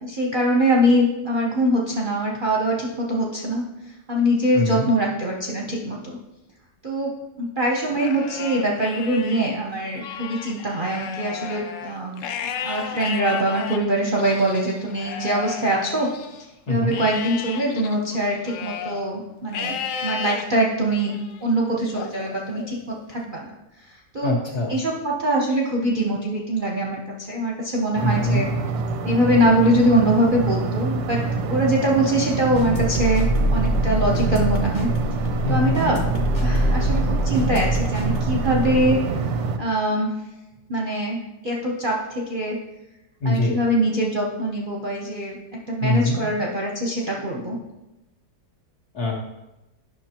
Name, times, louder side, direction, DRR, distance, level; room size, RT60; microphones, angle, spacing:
voice 1, 0.0-3.6 4.1-6.2 6.8-7.1 7.4-16.1 16.7-21.1 21.4-23.5 24.1-24.4 24.7-27.0 27.3-28.5 29.0-34.9 35.5-36.0 36.4-39.0 39.6-40.1 40.7-41.2 41.4-42.6 43.2-45.4 45.7-47.6, right 1 dB, 45° right, -2 dB, 0.7 m, -23 dB
voice 2, 4.5-4.9 16.7-17.0 24.2-24.8 28.0-28.5 35.4-35.8 43.2-43.5 45.8-46.2 48.9-49.2, left 1 dB, 55° left, -4 dB, 2.1 m, -23 dB
Livestock farm animals working animals, 7.8-9.4 9.9-16.4 16.9-19.0 19.5-20.4 21.0-21.4 21.9-23.0, left 7 dB, 75° left, 0.7 m, -34 dB
sound 1, 28.0-39.6, right 4 dB, 90° right, 1.3 m, -26 dB
sound 2, 32.5-38.9, equal, 35° left, 0.8 m, -24 dB
9.9 x 6.0 x 2.9 m, 0.94 s
omnidirectional pair, 2.0 m